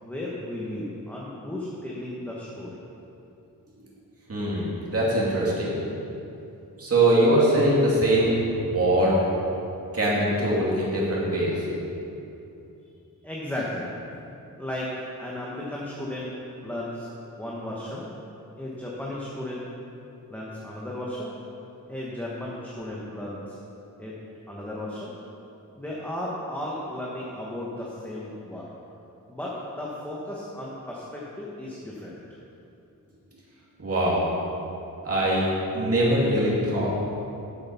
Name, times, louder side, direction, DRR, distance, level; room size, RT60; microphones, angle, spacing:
voice 1, 0.0-2.8 13.2-13.9 14.6-14.9 15.2-16.3 16.6-17.1 17.4-18.1 18.6-19.7 20.3-21.3 21.9-23.6 24.0-24.1 24.5-25.1 25.8-28.7 29.3-32.2, left 1 dB, 5° left, -6 dB, 1.1 m, -34 dB
voice 2, 4.3-5.7 6.8-8.3 8.6-9.2 9.9-11.6 33.8-34.3 35.0-36.9, right 1 dB, 45° right, -6 dB, 2.4 m, -22 dB
8.1 x 7.9 x 5.7 m, 2.8 s
wide cardioid pair, 140°, 34 cm